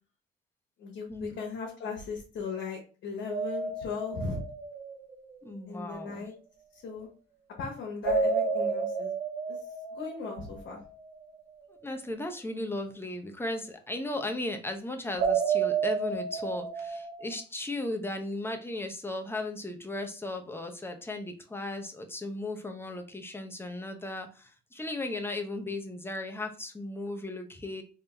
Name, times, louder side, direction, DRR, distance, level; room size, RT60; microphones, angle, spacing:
voice 1, 0.8-4.4 5.7-6.3 6.7-7.1 7.6-9.1 9.5-10.8, left 4 dB, 80° left, -2 dB, 1.2 m, -38 dB
sound 1, 3.3-5.4 8.0-10.9 15.2-17.4, right 5 dB, 55° right, 0.8 m, -31 dB
voice 2, 5.4-6.2 11.8-27.8, left 2 dB, 10° left, 4 dB, 0.8 m, -36 dB
3.6 x 2.8 x 3.4 m, 0.37 s
cardioid pair, 90°, 20 cm